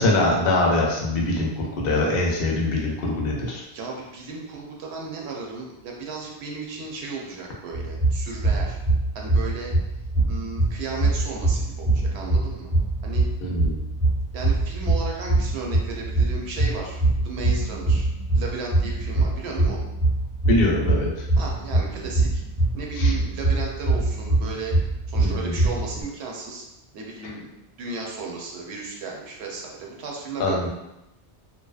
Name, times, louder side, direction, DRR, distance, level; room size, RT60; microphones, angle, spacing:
voice 1, 0.0-3.6 13.4-13.7 20.5-21.3 22.9-23.1 25.2-25.6 30.4-30.7, left 2 dB, 65° left, -2 dB, 0.7 m, -23 dB
voice 2, 3.7-8.8 9.1-9.7 10.3-12.7 13.0-13.3 14.3-18.1 18.3-19.9 21.4-22.4 22.7-24.8 25.1-26.7 26.9-30.7, right 4 dB, 80° right, -1 dB, 0.8 m, -34 dB
sound 1, 7.7-26.0, right 2 dB, 15° right, 0.8 m, -23 dB
2.7 x 2.0 x 2.3 m, 0.91 s
omnidirectional pair, 1.1 m